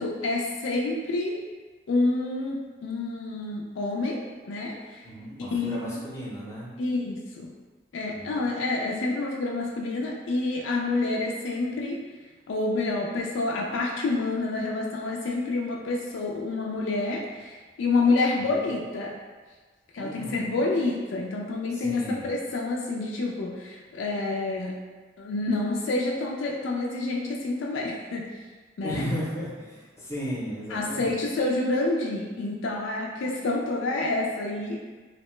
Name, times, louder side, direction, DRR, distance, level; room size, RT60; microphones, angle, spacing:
voice 1, 0.0-1.4 1.9-5.0 5.5-6.0 6.8-7.5 7.9-12.0 12.5-19.1 19.9-24.7 25.2-28.2 28.8-29.1 30.7-34.8, left 2 dB, 85° left, -2 dB, 0.4 m, -28 dB
voice 2, 5.0-6.7 8.1-8.5 18.5-18.7 20.0-20.6 21.7-22.3 28.8-31.2, equal, 15° left, -7 dB, 0.6 m, -35 dB
2.8 x 2.1 x 3.0 m, 1.4 s
head